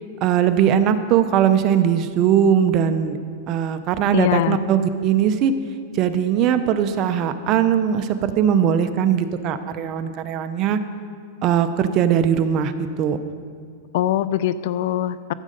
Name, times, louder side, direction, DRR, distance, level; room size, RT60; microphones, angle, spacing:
voice 1, 0.2-3.2 3.5-5.5 5.9-10.8 11.4-13.2, right 9 dB, 35° right, 10 dB, 0.6 m, -20 dB
voice 2, 4.1-4.6 13.9-15.3, left 12 dB, 60° left, 16 dB, 0.4 m, -22 dB
13.5 x 7.5 x 5.1 m, 2.1 s
supercardioid pair, 145°, 0 cm